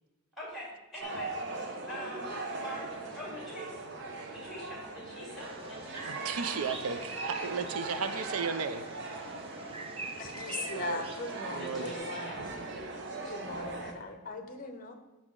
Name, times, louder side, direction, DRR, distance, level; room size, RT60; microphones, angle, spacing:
voice 1, 0.4-3.9 4.3-6.3 10.5-10.6 11.6-12.3 13.2-13.3, equal, ahead, -4 dB, 2.3 m, -45 dB
sound 1, 1.0-13.9, right 2 dB, 50° right, 0.8 m, -40 dB
Bird vocalization bird call bird song, 5.4-12.0, right 3 dB, 25° right, 0.5 m, -45 dB
voice 2, 6.0-8.8 10.7-11.0 11.5-11.9, right 5 dB, 80° right, 10 dB, 0.5 m, -35 dB
voice 3, 10.1-12.3 13.2-15.0, left 3 dB, 40° left, 5 dB, 0.7 m, -40 dB
6.2 x 5.9 x 3.8 m, 1.2 s
head